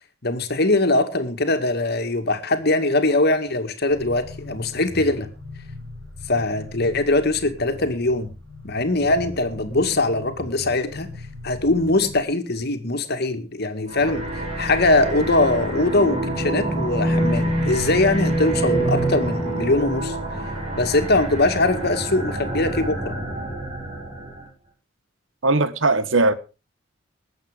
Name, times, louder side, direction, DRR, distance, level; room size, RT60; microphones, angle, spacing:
voice 1, 0.2-5.3 6.3-8.3 8.6-11.1 11.4-14.2 14.6-20.2 20.7-23.2, left 2 dB, 55° left, 2.1 m, -21 dB
sound 1, 3.9-12.2, left 2 dB, 70° right, 4.4 m, -39 dB
sound 2, 13.9-24.5, right 1 dB, 30° right, 7.7 m, -26 dB
voice 2, 25.4-26.3, right 2 dB, 85° right, 1.3 m, -19 dB
20.0 x 8.0 x 5.1 m
head